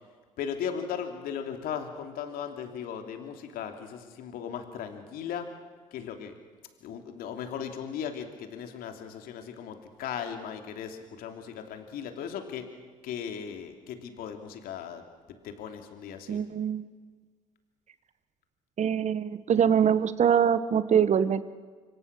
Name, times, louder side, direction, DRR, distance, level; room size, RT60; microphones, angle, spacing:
voice 1, 0.4-5.5 5.9-6.3 6.8-12.7 13.0-15.0 15.4-16.4, left 8 dB, 65° left, 5 dB, 2.8 m, -37 dB
voice 2, 16.3-16.8 18.8-21.5, right 8 dB, 45° right, 14 dB, 1.3 m, -24 dB
25.5 x 24.0 x 6.1 m, 1.5 s
hypercardioid pair, 55°, 16 cm